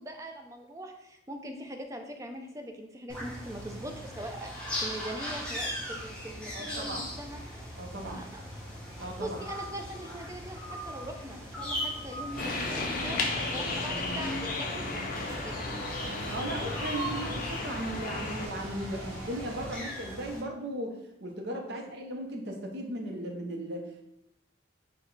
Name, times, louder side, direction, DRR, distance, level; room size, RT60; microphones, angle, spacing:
voice 1, 0.0-7.4 8.0-8.4 9.2-15.6 16.5-16.6 21.7-21.8, right 1 dB, 15° right, 4 dB, 0.4 m, -42 dB
sound 1, 3.1-20.4, equal, 5° left, 0.8 m, -39 dB
voice 2, 6.5-7.1 7.8-8.2 9.0-9.4 16.3-24.0, right 1 dB, 60° right, 2 dB, 0.7 m, -37 dB
sound 2, 12.3-19.8, equal, 40° right, 1.5 m, -43 dB
sound 3, 12.4-18.5, left 3 dB, 45° left, 0.5 m, -34 dB
4.6 x 2.2 x 3.9 m, 0.83 s
head